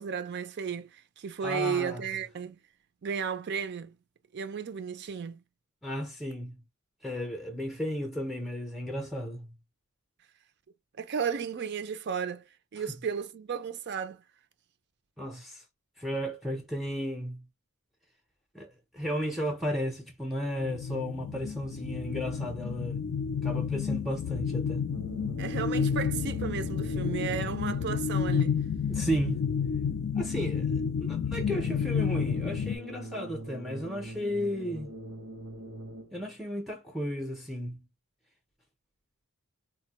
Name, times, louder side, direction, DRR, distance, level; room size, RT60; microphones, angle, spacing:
voice 1, 0.0-2.6 3.0-3.9 4.3-5.4 11.0-12.4 12.7-14.2 25.4-28.6, right 6 dB, 50° right, 0.4 m, -34 dB
voice 2, 1.4-2.0 5.8-6.6 7.0-9.5 15.2-15.6 16.0-17.4 18.5-18.7 18.9-23.0 23.4-24.9 28.9-29.4 30.2-34.9 36.1-37.8, equal, ahead, 0.6 m, -34 dB
sound 1, 20.6-32.8, left 6 dB, 55° left, 0.4 m, -30 dB
sound 2, 24.9-28.3 31.3-36.3, right 1 dB, 80° right, 0.7 m, -43 dB
3.9 x 2.1 x 2.8 m
head